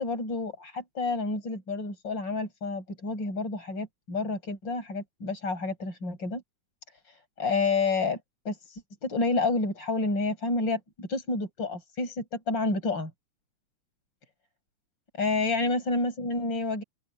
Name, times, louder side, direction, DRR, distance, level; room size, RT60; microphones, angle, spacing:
voice 1, 0.0-6.4 7.4-8.2 8.5-8.6 9.0-13.1 15.2-16.8, left 3 dB, 35° left, 8.7 m, -29 dB
open air
omnidirectional pair, 3.5 m